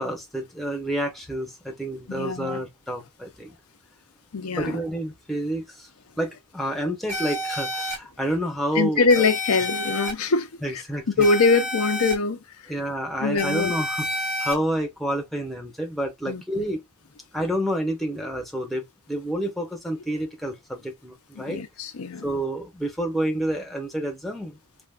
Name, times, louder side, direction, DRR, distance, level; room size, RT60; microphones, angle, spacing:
voice 1, 0.0-3.6 4.6-5.9 6.2-9.3 10.6-11.3 12.7-14.1 14.4-16.9 17.3-21.6 22.2-24.6, right 1 dB, ahead, 0.7 m, -29 dB
voice 2, 2.1-2.6 4.3-4.8 8.7-12.7 13.2-13.7 16.3-16.7 21.4-22.3, left 4 dB, 90° left, 0.7 m, -23 dB
sound 1, 7.1-8.0 9.1-10.1 11.2-12.1 13.4-14.5, left 1 dB, 80° right, 1.9 m, -29 dB
3.4 x 2.4 x 2.3 m
head